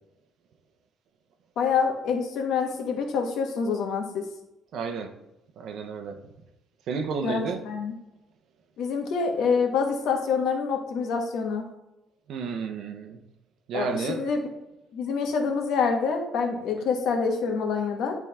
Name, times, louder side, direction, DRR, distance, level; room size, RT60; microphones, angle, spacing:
voice 1, 1.6-4.2 7.2-7.9 8.8-11.6 13.7-14.5 14.9-18.1, left 5 dB, 70° left, 3 dB, 1.5 m, -26 dB
voice 2, 4.7-5.1 5.6-6.2 6.9-7.6 12.3-13.2 13.7-14.3, right 5 dB, 60° right, 7 dB, 0.9 m, -31 dB
10.5 x 3.7 x 3.4 m, 0.93 s
cardioid pair, 155°, 0 cm